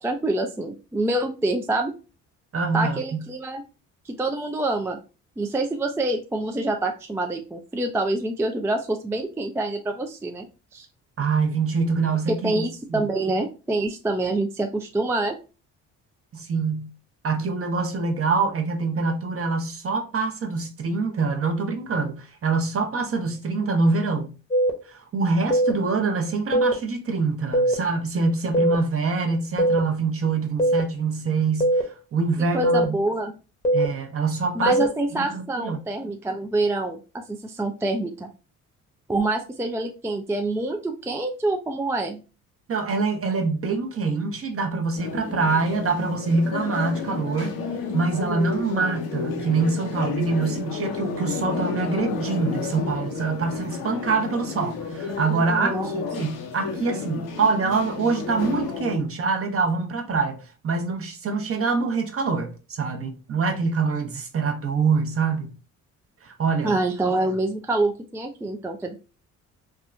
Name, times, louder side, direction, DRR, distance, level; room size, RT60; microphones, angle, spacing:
voice 1, 0.0-1.9 2.7-3.6 4.1-5.0 5.4-10.5 10.7-10.9 12.4-15.3 32.5-33.3 34.5-38.3 39.1-42.2 55.6-55.9 66.6-69.0, right 2 dB, 10° right, 0.3 m, -26 dB
voice 2, 2.5-3.2 11.2-12.6 12.9-13.1 16.3-16.9 17.2-24.3 24.9-31.7 32.1-33.0 33.7-34.8 35.1-35.8 42.7-47.6 47.9-55.8 56.2-65.5 66.2-66.8, right 4 dB, 40° right, 0.8 m, -25 dB
sound 1, 24.5-24.7 25.5-25.7 26.5-26.7 27.5-27.7 28.5-28.7 29.6-29.8 30.6-30.8 31.6-31.8 32.6-32.8 33.6-33.9 34.7-34.9, right 1 dB, 20° left, 0.8 m, -19 dB
sound 2, 45.0-59.0, left 5 dB, 80° left, 0.8 m, -31 dB
3.5 x 2.1 x 2.5 m
supercardioid pair, 60°, 35 cm